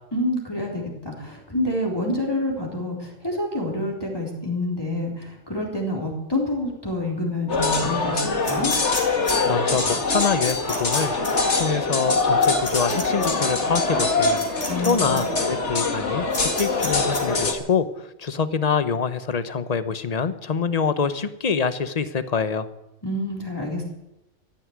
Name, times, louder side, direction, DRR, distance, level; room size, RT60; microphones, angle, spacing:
voice 1, 0.1-8.8 14.7-15.2 23.0-23.8, left 1 dB, 20° left, -2 dB, 3.7 m, -27 dB
sound 1, 7.5-17.5, left 3 dB, 70° left, 2.2 m, -23 dB
sound 2, 8.4-9.3 10.4-11.0 11.2-11.3 12.4-13.3 14.4-14.9 15.2-15.3 16.3-17.2, left 2 dB, 90° left, 4.8 m, -32 dB
voice 2, 9.5-14.5 14.8-22.7, left 5 dB, 35° left, 12 dB, 0.9 m, -25 dB
14.5 x 9.9 x 9.5 m, 0.92 s
omnidirectional pair, 1.2 m